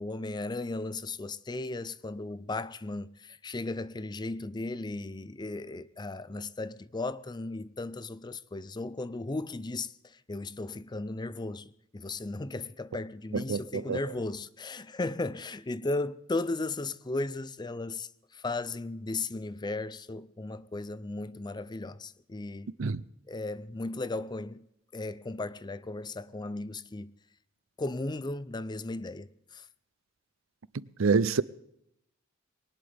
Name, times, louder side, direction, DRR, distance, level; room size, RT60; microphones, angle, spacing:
voice 1, 0.0-22.7 23.3-24.7 24.9-27.1 27.8-29.7, left 2 dB, 20° left, 0.5 m, -36 dB
voice 2, 13.3-14.0 22.8-23.0 31.0-31.4, right 5 dB, 70° right, 0.5 m, -26 dB
21.5 x 19.0 x 3.5 m
head